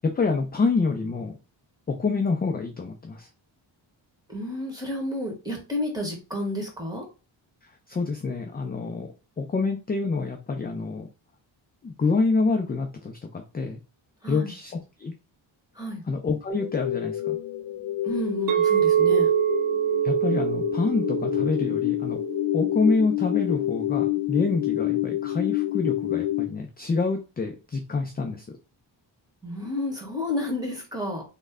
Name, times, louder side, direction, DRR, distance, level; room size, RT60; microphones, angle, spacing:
voice 1, 0.0-1.3 1.9-3.3 7.9-11.1 11.8-13.8 14.3-15.1 16.1-17.4 20.0-22.2 22.5-28.5, left 4 dB, 20° left, 5 dB, 0.4 m, -27 dB
voice 2, 4.3-7.0 14.2-14.5 15.7-16.0 18.0-19.3 29.4-31.2, left 1 dB, 10° right, 0 dB, 1.5 m, -31 dB
sound 1, 16.5-26.5, left 14 dB, 65° left, 0.6 m, -28 dB
Chink clink, 18.5-22.7, right 10 dB, 50° right, 0.6 m, -25 dB
3.1 x 2.2 x 3.6 m, 0.31 s
cardioid pair, 90°, 45 cm